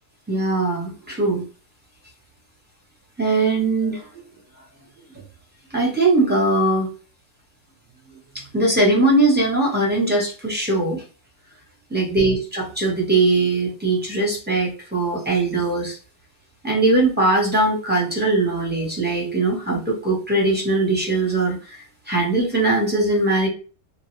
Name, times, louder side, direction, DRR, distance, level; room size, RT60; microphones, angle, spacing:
voice 1, 0.3-1.4 3.2-4.1 5.7-6.9 8.3-11.0 11.9-16.0 16.6-21.8 22.1-23.5, right 2 dB, 10° right, -4 dB, 0.8 m, -20 dB
3.0 x 2.3 x 3.1 m, 0.35 s
omnidirectional pair, 1.7 m